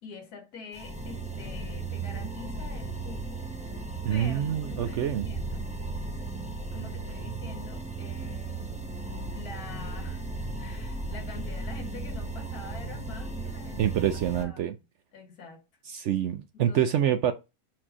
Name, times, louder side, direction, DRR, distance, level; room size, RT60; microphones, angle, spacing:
voice 1, 0.0-3.4 4.1-5.7 6.7-8.8 9.3-10.3 10.6-13.9 14.3-14.8 15.1-15.6 16.5-17.1, left 4 dB, 85° left, 1.8 m, -46 dB
sound 1, 0.7-14.4, right 3 dB, 10° right, 0.5 m, -36 dB
voice 2, 4.0-5.3 13.8-14.7 15.9-17.3, right 10 dB, 65° right, 0.7 m, -26 dB
4.5 x 4.2 x 5.0 m
omnidirectional pair, 1.6 m